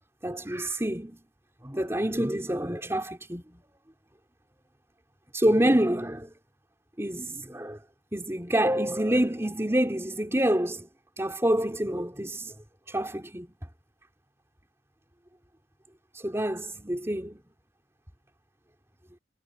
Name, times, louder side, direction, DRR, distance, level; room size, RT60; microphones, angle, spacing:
voice 1, 0.2-1.2 1.6-3.6 5.3-6.3 7.0-7.8 8.1-10.9 11.2-12.5 12.9-13.5 16.1-17.4, right 1 dB, 15° right, 3.9 m, -27 dB
head